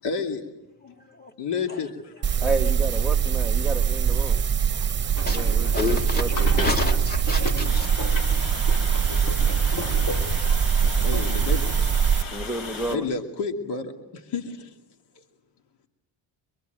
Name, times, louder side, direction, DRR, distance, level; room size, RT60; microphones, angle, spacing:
voice 1, 0.0-0.5 1.4-2.4 11.0-12.1 12.9-14.8 15.1-15.2, left 5 dB, 65° left, 3 dB, 2.6 m, -31 dB
sound 1, 2.2-12.2, right 7 dB, 25° right, 1.0 m, -23 dB
voice 2, 2.4-4.4 5.2-6.7 12.3-13.1, right 2 dB, ahead, 6 dB, 1.3 m, -31 dB
sound 2, 4.9-12.9, left 1 dB, 45° left, 3.4 m, -33 dB
voice 3, 5.7-6.2 6.6-7.9, left 3 dB, 20° left, 4 dB, 2.6 m, -29 dB
Water, 7.6-13.0, left 4 dB, 85° left, 4.2 m, -37 dB
25.5 x 23.0 x 9.2 m, 1.0 s
cardioid pair, 145°, 44 cm